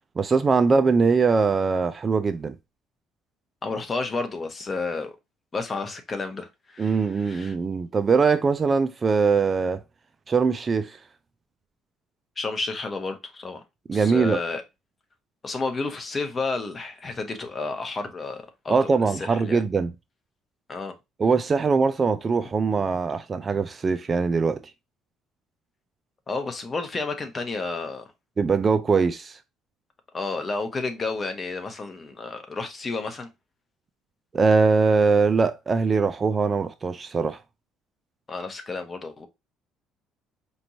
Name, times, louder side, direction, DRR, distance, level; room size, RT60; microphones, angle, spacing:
voice 1, 0.2-2.6 6.8-9.8 10.3-11.0 13.9-14.4 18.7-19.9 21.2-24.6 28.4-29.4 34.3-37.4, right 4 dB, 30° right, 0.4 m, -22 dB
voice 2, 3.6-5.1 5.5-7.5 12.4-13.6 13.9-14.6 15.4-19.6 20.7-20.9 26.3-28.0 30.1-33.3 38.3-39.3, left 3 dB, 25° left, 1.1 m, -31 dB
5.1 x 3.1 x 2.7 m
cardioid pair, 115°, 0 cm